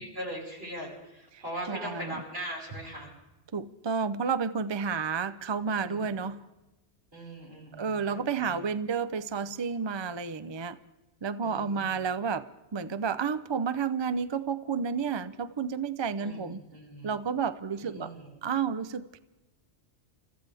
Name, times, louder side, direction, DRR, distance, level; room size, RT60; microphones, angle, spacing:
voice 1, 0.0-3.1 5.8-6.1 7.1-8.6 11.4-11.8 16.2-17.2 17.7-18.3, right 1 dB, 55° right, -3 dB, 5.4 m, -40 dB
voice 2, 1.7-2.2 3.5-6.5 7.7-10.8 11.2-12.5 12.7-16.6 17.0-18.1 18.4-19.2, right 6 dB, 40° right, 14 dB, 0.4 m, -31 dB
29.0 x 14.5 x 3.4 m, 1.0 s
omnidirectional pair, 1.2 m